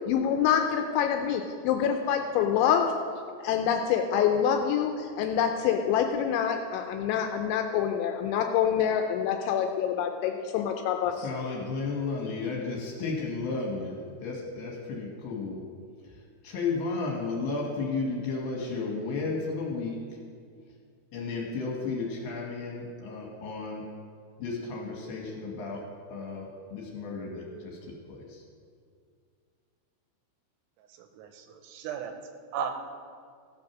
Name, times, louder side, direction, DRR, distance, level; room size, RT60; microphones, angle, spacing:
voice 1, 0.1-2.9 3.4-11.3, left 8 dB, 85° left, 4 dB, 2.7 m, -26 dB
voice 2, 11.0-15.6 16.4-20.0 21.1-23.9 24.4-28.4, left 4 dB, 65° left, -1 dB, 2.7 m, -33 dB
voice 3, 31.0-32.1 32.5-32.7, right 7 dB, 85° right, 6 dB, 2.9 m, -35 dB
16.0 x 6.2 x 6.0 m, 2.2 s
omnidirectional pair, 5.8 m